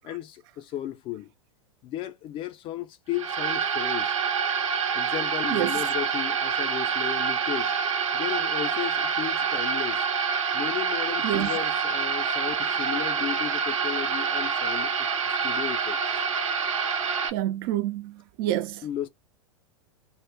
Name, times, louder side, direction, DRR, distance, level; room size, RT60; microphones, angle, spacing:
voice 1, 0.0-1.3 1.8-4.2 4.9-7.8 8.1-10.0 10.5-16.2 18.8-19.1, left 12 dB, 30° left, 0.4 m, -35 dB
sound 1, 3.1-17.3, right 6 dB, 80° right, 0.7 m, -27 dB
voice 2, 17.3-18.8, right 13 dB, 45° right, 0.4 m, -28 dB
2.1 x 2.1 x 3.4 m
hypercardioid pair, 105°, 16 cm